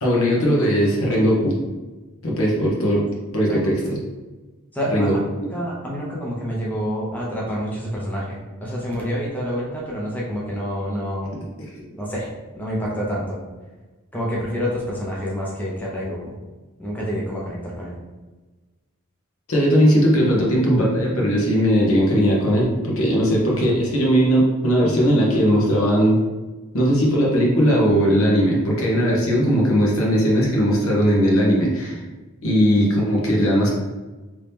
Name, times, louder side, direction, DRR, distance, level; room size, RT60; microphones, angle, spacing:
voice 1, 0.0-1.6 2.2-3.1 3.3-4.0 4.9-5.2 11.8-11.9 19.5-26.2 26.7-32.0 32.4-33.7, equal, 75° left, -3 dB, 1.0 m, -18 dB
voice 2, 4.7-5.2 5.5-11.4 12.0-12.3 12.5-13.4 14.1-16.3 16.8-18.0, equal, 10° left, -5 dB, 0.6 m, -27 dB
3.0 x 2.8 x 3.4 m, 1.2 s
head